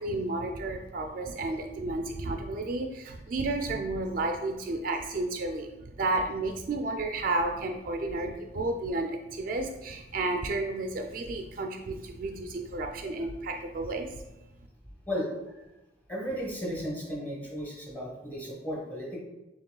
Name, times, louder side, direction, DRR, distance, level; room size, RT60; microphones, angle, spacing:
voice 1, 0.0-14.1, right 2 dB, 50° right, 4 dB, 0.3 m, -32 dB
voice 2, 15.1-15.6 16.1-19.2, equal, 10° left, -4 dB, 1.2 m, -35 dB
6.8 x 2.9 x 2.2 m, 0.97 s
head